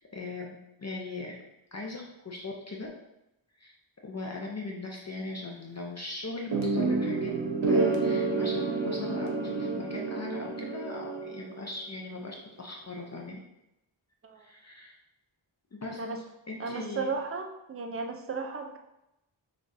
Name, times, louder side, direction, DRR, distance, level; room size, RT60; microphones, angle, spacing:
voice 1, 0.1-1.4 1.7-2.9 3.6-3.7 4.0-7.3 7.7-13.4 14.4-14.9 15.7-16.0 16.5-17.1, left 2 dB, 35° left, -1 dB, 0.6 m, -39 dB
sound 1, 6.5-11.6, right 3 dB, 85° right, 0.8 m, -29 dB
voice 2, 16.6-18.8, right 4 dB, 30° right, 4 dB, 0.5 m, -35 dB
5.9 x 2.4 x 2.6 m, 0.88 s
wide cardioid pair, 75°, 47 cm